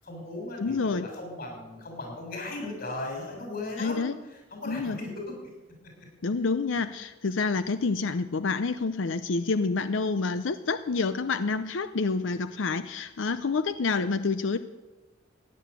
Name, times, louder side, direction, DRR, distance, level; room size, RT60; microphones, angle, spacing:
voice 1, 0.0-5.3, left 2 dB, 55° left, 1 dB, 6.5 m, -37 dB
voice 2, 0.6-1.1 3.8-4.1 4.7-5.0 6.2-14.6, left 4 dB, 90° left, 12 dB, 0.6 m, -28 dB
16.5 x 10.5 x 8.2 m, 1.2 s
head